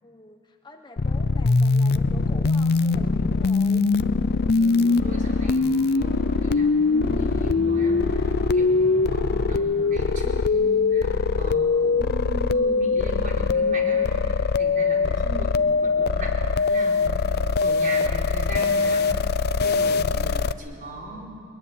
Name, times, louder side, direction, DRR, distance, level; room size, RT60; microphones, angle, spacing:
voice 1, 0.0-3.9 9.2-10.0 21.0-21.3, left 2 dB, 20° left, 4 dB, 1.2 m, -45 dB
sound 1, 1.0-20.5, left 4 dB, 50° left, 0.5 m, -22 dB
voice 2, 4.5-17.2 17.6-19.0 19.6-21.3, equal, 40° right, -1 dB, 4.5 m, -37 dB
sound 2, 4.6-10.2, equal, 70° right, 7.3 m, -39 dB
21.5 x 21.0 x 10.0 m, 2.4 s
head